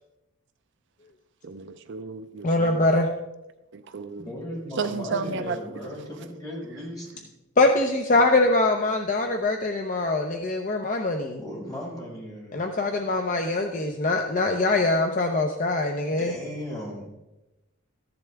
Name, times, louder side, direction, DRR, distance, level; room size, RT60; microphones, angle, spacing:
voice 1, 1.4-2.9 3.7-4.3 4.8-5.6, right 4 dB, 55° right, 0.5 m, -32 dB
voice 2, 2.4-3.1 7.6-11.4 12.5-16.3, left 2 dB, 35° left, 0.7 m, -23 dB
voice 3, 4.2-7.2 11.4-12.5 16.1-17.1, equal, 20° left, 4.9 m, -36 dB
14.5 x 10.5 x 3.5 m
head